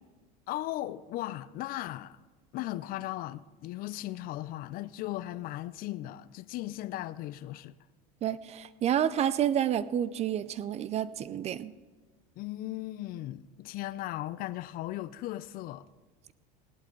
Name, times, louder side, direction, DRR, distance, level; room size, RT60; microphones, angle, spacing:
voice 1, 0.5-2.2 2.5-7.7 12.4-15.9, left 15 dB, 50° left, 0.5 m, -37 dB
voice 2, 8.2-11.7, right 10 dB, 35° right, 0.5 m, -29 dB
17.0 x 11.0 x 3.8 m
supercardioid pair, 105°, 19 cm